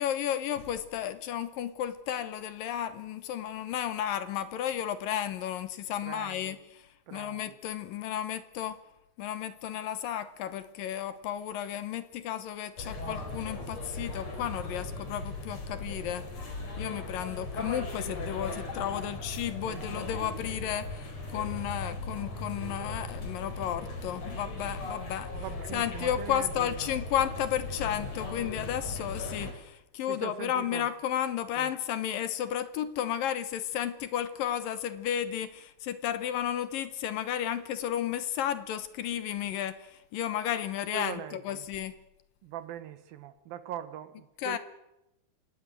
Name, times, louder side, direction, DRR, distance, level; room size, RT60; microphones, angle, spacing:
voice 1, 0.0-8.8 9.2-16.3 16.8-42.0 44.4-44.6, left 10 dB, 70° left, 2.6 m, -33 dB
voice 2, 6.0-6.6 7.1-7.6 19.0-19.2 19.7-19.9 25.3-27.1 30.1-30.9 31.6-31.7 40.9-41.7 42.4-44.6, right 9 dB, 70° right, 3.0 m, -41 dB
sound 1, 12.8-29.5, left 2 dB, 45° left, 5.5 m, -38 dB
27.0 x 17.5 x 9.2 m
omnidirectional pair, 4.5 m